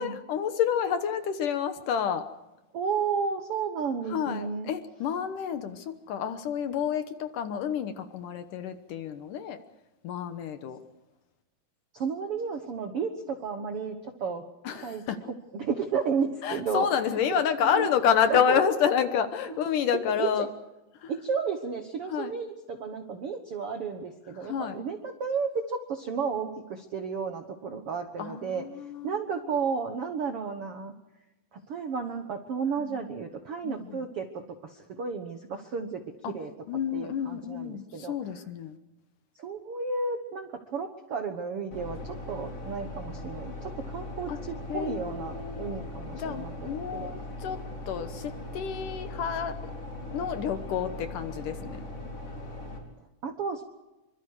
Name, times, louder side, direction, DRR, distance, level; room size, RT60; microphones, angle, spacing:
voice 1, 0.0-2.3 4.1-9.6 10.0-10.8 14.6-15.2 16.4-20.5 21.0-21.2 22.1-22.3 24.3-24.8 28.2-29.6 32.8-33.0 33.6-34.1 36.2-36.4 36.7-38.8 44.3-44.4 44.7-47.6 47.9-49.7 50.1-51.8, left 8 dB, 65° left, 9 dB, 2.4 m, -29 dB
voice 2, 2.7-4.7 11.9-14.4 14.8-15.0 15.5-16.9 17.7-17.9 18.3-18.6 20.2-20.5 21.1-28.7 29.0-30.9 31.5-36.5 36.9-38.1 39.4-47.1 53.2-53.6, right 5 dB, 65° right, 6 dB, 1.4 m, -33 dB
sound 1, 41.7-52.8, left 2 dB, 40° left, 5.1 m, -39 dB
26.5 x 25.0 x 4.8 m, 1.0 s
omnidirectional pair, 4.5 m